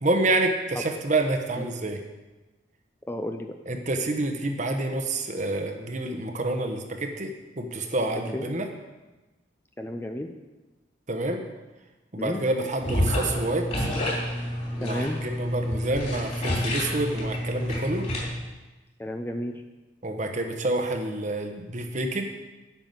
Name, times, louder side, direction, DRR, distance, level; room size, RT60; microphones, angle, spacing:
voice 1, 0.0-2.0 3.7-8.7 11.1-11.4 12.1-13.9 14.8-18.1 20.0-22.3, right 2 dB, 40° right, 5 dB, 1.1 m, -28 dB
voice 2, 3.1-3.6 8.3-8.5 9.8-10.3 12.2-12.4 14.8-15.2 19.0-19.5, left 1 dB, 10° left, 5 dB, 0.5 m, -32 dB
sound 1, 12.8-18.3, left 1 dB, 40° left, 3.1 m, -29 dB
9.1 x 6.0 x 7.9 m, 1.1 s
head